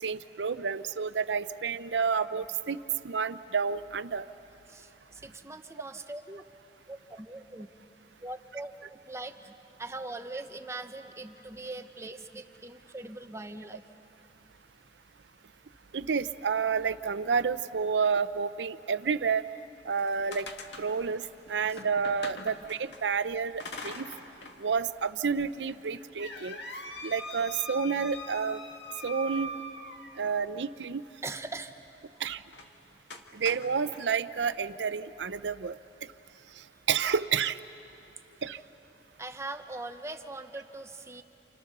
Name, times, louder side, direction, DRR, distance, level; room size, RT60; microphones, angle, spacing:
voice 1, 0.0-2.8 3.0-4.3 15.9-19.5 19.9-20.5 20.8-24.1 24.6-26.6 27.0-28.6 29.0-29.6 30.2-31.0 32.2-32.4 33.3-35.8 36.9-37.6 38.4-38.6, right 6 dB, 85° right, 12 dB, 0.6 m, -30 dB
voice 2, 4.7-6.4 6.9-7.7 8.2-9.5 9.8-13.8 21.7-21.8 26.8-26.9 31.2-31.7 33.3-33.4 39.2-41.2, right 2 dB, 15° right, 7 dB, 0.9 m, -41 dB
sound 1, 19.9-23.0 23.6-24.6 25.0-25.1 25.7-30.4 32.5-32.7 33.1-34.0, left 1 dB, 80° left, 1.8 m, -42 dB
29.5 x 28.5 x 6.7 m, 3.0 s
head